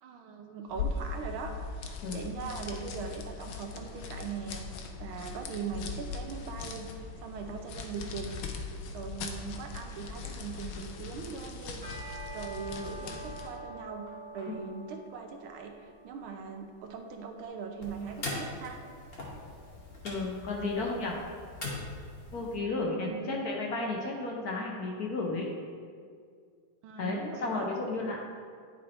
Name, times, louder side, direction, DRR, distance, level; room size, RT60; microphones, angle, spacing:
voice 1, 0.0-1.5 1.8-6.9 7.2-14.0 14.3-18.8 22.9-23.4 26.8-27.7, right 5 dB, 80° right, 4 dB, 1.6 m, -40 dB
sound 1, 0.7-13.6, left 4 dB, 85° left, 1.5 m, -40 dB
sound 2, 11.8-21.0, right 2 dB, 30° right, 2.0 m, -48 dB
sound 3, 17.8-22.6, left 2 dB, 35° left, 1.2 m, -41 dB
voice 2, 20.0-21.2 22.3-25.5 27.0-28.2, left 3 dB, 55° left, -1 dB, 1.2 m, -33 dB
11.0 x 4.2 x 4.3 m, 2.1 s
omnidirectional pair, 2.2 m